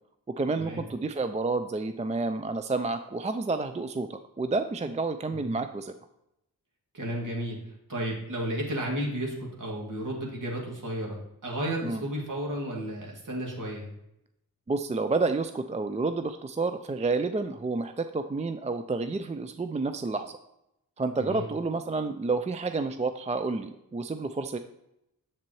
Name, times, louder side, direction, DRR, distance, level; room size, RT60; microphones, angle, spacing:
voice 1, 0.4-5.9 11.8-12.0 14.7-20.4 21.0-24.6, right 3 dB, 20° right, 9 dB, 0.4 m, -30 dB
voice 2, 6.9-7.6 7.9-13.9 21.2-21.4, right 1 dB, 55° right, -2 dB, 2.5 m, -33 dB
7.3 x 7.3 x 3.1 m, 0.84 s
cardioid pair, 45°, 37 cm